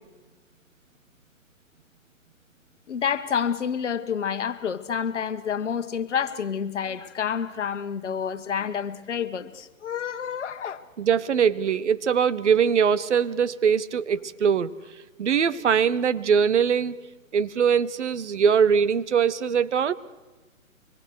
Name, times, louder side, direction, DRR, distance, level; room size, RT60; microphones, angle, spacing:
voice 1, 2.9-10.8, left 7 dB, 55° left, 1.7 m, -29 dB
voice 2, 11.0-14.7 15.2-17.0 17.3-19.9, right 7 dB, 55° right, 1.2 m, -22 dB
25.0 x 22.0 x 6.6 m
hypercardioid pair, 145°, 41 cm